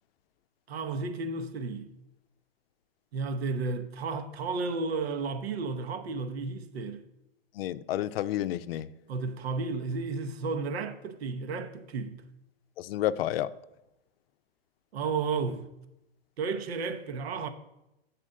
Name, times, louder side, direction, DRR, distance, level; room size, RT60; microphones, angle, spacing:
voice 1, 0.7-1.9 3.1-7.0 9.1-12.2 14.9-15.7 16.4-17.5, right 4 dB, 90° right, 0.9 m, -32 dB
voice 2, 7.5-8.9 12.8-13.5, left 13 dB, 70° left, 0.5 m, -30 dB
7.8 x 4.3 x 6.4 m
supercardioid pair, 145°, 30 cm